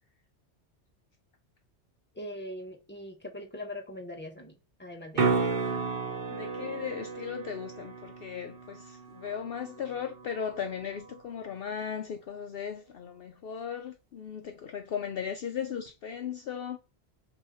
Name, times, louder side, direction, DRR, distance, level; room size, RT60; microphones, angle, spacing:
voice 1, 2.1-5.3, left 1 dB, 10° left, 1.4 m, -41 dB
sound 1, 5.1-11.2 15.9-16.0, right 4 dB, 55° right, 1.1 m, -33 dB
voice 2, 6.3-16.8, left 7 dB, 60° left, 0.7 m, -37 dB
6.5 x 3.1 x 5.5 m
omnidirectional pair, 1.2 m